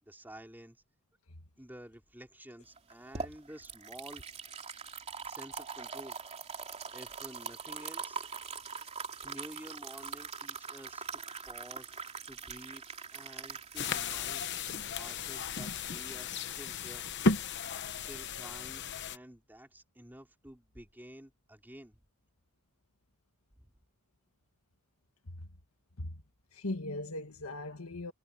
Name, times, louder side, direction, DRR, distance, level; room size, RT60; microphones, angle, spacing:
voice 1, 0.0-0.8 1.6-4.2 5.3-6.2 6.9-8.2 9.2-11.2 11.5-12.0 12.3-12.8 13.1-14.5 14.9-17.1 17.9-22.0 23.5-23.7, right 1 dB, 10° right, 4.1 m, -50 dB
sound 1, 2.8-15.7, right 5 dB, 30° right, 3.2 m, -43 dB
sound 2, 13.8-19.2, left 4 dB, 55° left, 1.0 m, -34 dB
voice 2, 26.5-28.1, left 2 dB, 80° left, 1.7 m, -39 dB
head